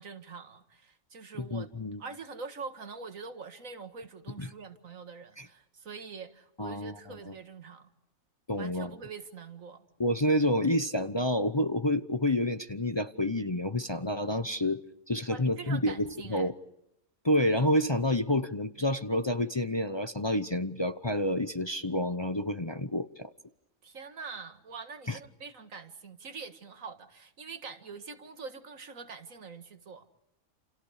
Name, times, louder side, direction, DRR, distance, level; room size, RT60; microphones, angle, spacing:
voice 1, 0.0-1.7 2.0-7.9 8.6-9.8 15.3-16.5 23.8-30.1, right 5 dB, 80° right, 2.2 m, -44 dB
voice 2, 1.4-2.0 4.4-4.5 5.4-5.5 6.6-7.0 7.3-7.4 8.5-8.9 10.0-14.8 15.1-16.5 17.2-23.3 25.1-25.2, left 1 dB, 25° left, 0.8 m, -29 dB
29.0 x 29.0 x 5.0 m
omnidirectional pair, 1.4 m